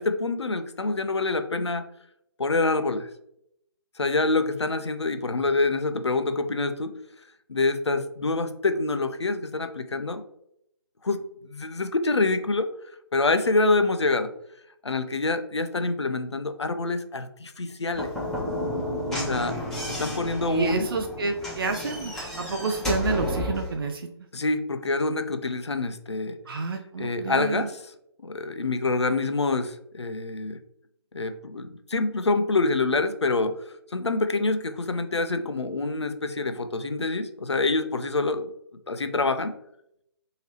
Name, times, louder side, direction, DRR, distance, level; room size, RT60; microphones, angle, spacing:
voice 1, 0.0-1.8 2.4-3.1 4.0-6.9 7.5-10.2 11.0-12.7 13.1-14.3 14.8-18.1 19.1-19.6 19.9-20.9 24.3-26.4 27.0-27.9 28.2-30.6 31.1-33.5 33.9-38.5 38.9-39.5, left 3 dB, 75° left, 9 dB, 0.5 m, -26 dB
Slam / Knock, 17.9-23.7, left 1 dB, 5° left, 0.7 m, -32 dB
voice 2, 20.4-24.0 26.5-27.7, right 3 dB, 55° right, 4 dB, 0.4 m, -29 dB
3.0 x 2.8 x 3.0 m, 0.75 s
figure-of-eight pair, 145°, 14 cm